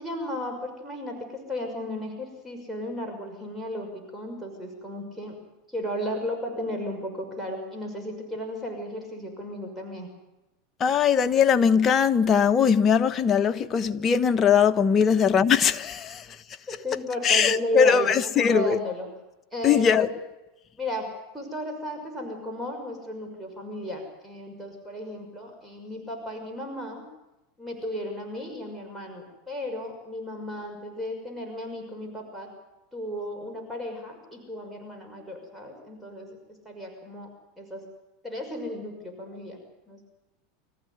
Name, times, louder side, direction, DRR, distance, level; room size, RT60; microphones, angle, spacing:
voice 1, 0.0-5.4 5.7-10.1 16.7-19.1 19.5-20.1 20.8-21.1 21.3-27.0 27.6-32.5 32.9-37.3 37.6-37.9 38.2-39.6 39.9-40.0, equal, 5° right, 6.0 m, -34 dB
voice 2, 10.8-16.4 17.2-18.8 19.6-20.1, left 7 dB, 30° left, 1.2 m, -21 dB
25.0 x 15.0 x 9.7 m
supercardioid pair, 115°, 0 cm